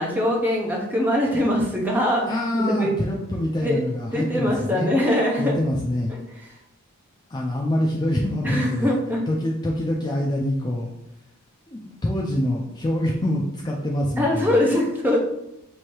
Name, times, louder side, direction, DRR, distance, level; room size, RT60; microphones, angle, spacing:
voice 1, 0.0-2.9 3.6-3.8 4.1-5.5 6.4-6.6 8.4-9.2 14.2-15.2, left 1 dB, 10° right, -2 dB, 0.7 m, -22 dB
voice 2, 2.3-4.9 5.4-6.1 7.3-8.9 9.3-10.9 11.7-14.5, left 1 dB, 20° left, -1 dB, 0.3 m, -25 dB
3.1 x 2.7 x 4.5 m, 0.84 s
head